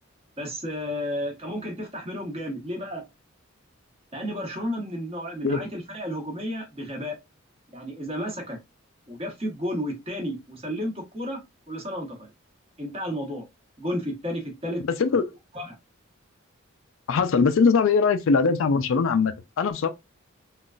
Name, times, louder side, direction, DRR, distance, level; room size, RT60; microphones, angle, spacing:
voice 1, 0.4-3.1 4.1-7.2 7.7-8.6 9.1-11.4 11.7-12.3 12.8-13.4 13.8-14.8 15.1-15.2 15.5-15.7, equal, 30° right, 1.1 m, -32 dB
voice 2, 14.9-15.3 17.1-19.9, left 5 dB, 65° left, 0.4 m, -21 dB
3.8 x 2.4 x 2.3 m
head